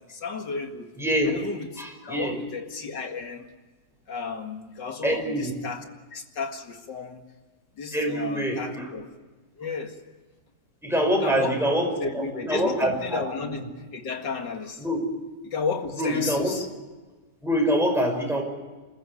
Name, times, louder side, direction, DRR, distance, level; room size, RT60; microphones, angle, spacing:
voice 1, 0.0-0.9 1.2-3.5 4.1-7.3 7.8-9.1 9.6-10.0 11.2-14.8 15.4-16.7, left 5 dB, 65° left, 5 dB, 2.5 m, -33 dB
voice 2, 1.0-1.3 1.8-2.4 5.0-5.5 7.9-8.9 10.8-13.3 13.6-13.7 14.8-15.1 16.0-16.5 17.4-18.4, equal, ahead, 1 dB, 5.7 m, -25 dB
28.0 x 14.5 x 9.5 m, 1.3 s
omnidirectional pair, 2.0 m